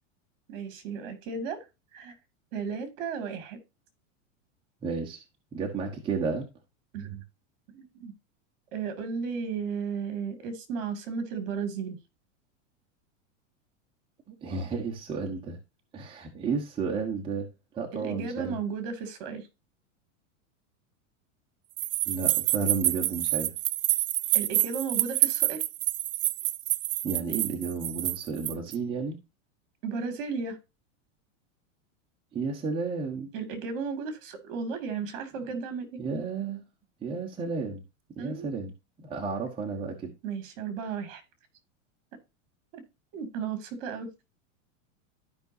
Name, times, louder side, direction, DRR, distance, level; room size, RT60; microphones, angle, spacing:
voice 1, 0.5-1.6 1.9-2.2 2.5-3.6 6.9-7.2 7.7-8.1 8.7-12.0 17.9-19.5 24.3-25.6 29.8-30.6 33.3-36.0 38.2-38.5 40.2-41.2 42.7-42.8 43.1-44.1, right 5 dB, 50° right, 2.6 m, -34 dB
voice 2, 4.8-5.2 5.5-6.4 14.3-15.6 15.9-17.5 17.8-18.5 22.0-23.5 27.0-29.2 32.3-33.3 36.0-36.6 37.0-37.8 38.2-38.7 39.0-40.1, right 4 dB, 15° right, 1.2 m, -32 dB
sound 1, 21.8-28.7, right 17 dB, 85° right, 0.6 m, -27 dB
13.5 x 5.4 x 2.7 m
supercardioid pair, 165°, 38 cm